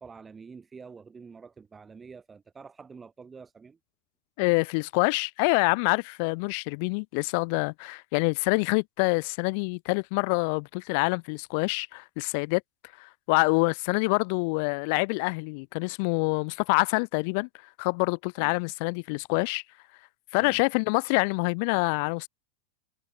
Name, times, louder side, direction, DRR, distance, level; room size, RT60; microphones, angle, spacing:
voice 1, 0.0-3.8 18.4-18.5 20.4-20.6, right 5 dB, 15° right, 4.9 m, -47 dB
voice 2, 4.4-12.6 13.0-17.5 17.8-19.6 20.3-22.3, left 33 dB, 45° left, 0.9 m, -26 dB
figure-of-eight pair, 90°, 0 cm